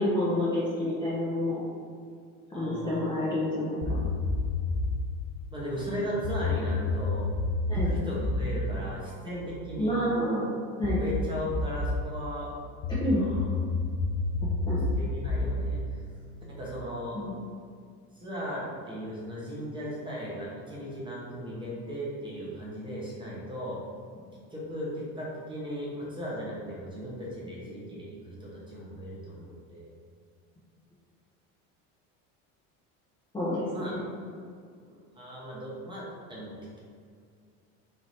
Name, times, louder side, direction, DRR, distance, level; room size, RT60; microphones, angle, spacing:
voice 1, 0.0-1.6 2.5-4.0 7.7-7.9 9.8-10.5 10.8-11.0 13.0-13.2 14.7-14.8 17.1-17.3 33.3-34.0, left 1 dB, 15° left, -9 dB, 0.7 m, -28 dB
voice 2, 2.5-3.3 5.5-7.2 7.8-10.0 11.0-12.5 13.0-13.4 14.7-15.8 16.5-17.2 18.1-23.8 24.5-29.9 33.7-34.0 34.9-36.8, equal, 15° right, -6 dB, 1.0 m, -37 dB
sound 1, 3.8-5.1 6.2-9.9 10.8-12.1 12.8-16.8, left 2 dB, 80° left, 0.7 m, -30 dB
3.3 x 2.8 x 4.1 m, 2.2 s
cardioid pair, 135°, 35 cm